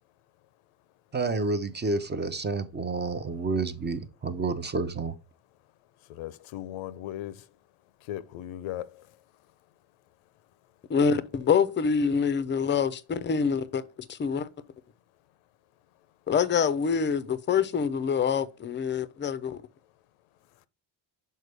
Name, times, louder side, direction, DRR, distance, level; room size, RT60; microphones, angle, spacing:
voice 1, 1.1-5.2, right 3 dB, 20° right, 0.5 m, -29 dB
voice 2, 6.1-7.4 8.1-9.0, left 13 dB, 85° left, 0.7 m, -37 dB
voice 3, 10.9-13.8 14.1-14.5 16.3-19.6, left 6 dB, 25° left, 0.5 m, -26 dB
6.5 x 4.5 x 3.3 m
cardioid pair, 120°, 48 cm